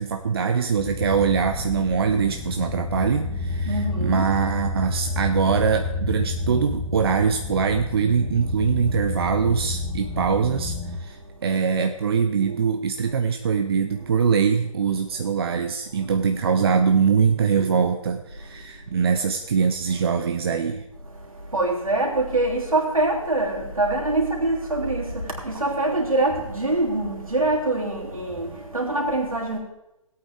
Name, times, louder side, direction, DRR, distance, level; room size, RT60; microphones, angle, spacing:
voice 1, 0.0-20.8, right 6 dB, 45° right, 0.6 m, -23 dB
sound 1, 0.8-11.0, left 3 dB, 20° left, 1.2 m, -30 dB
voice 2, 3.7-4.3 21.5-29.6, right 2 dB, 80° right, 3.2 m, -24 dB
17.0 x 8.7 x 3.6 m
figure-of-eight pair, 135°, 18 cm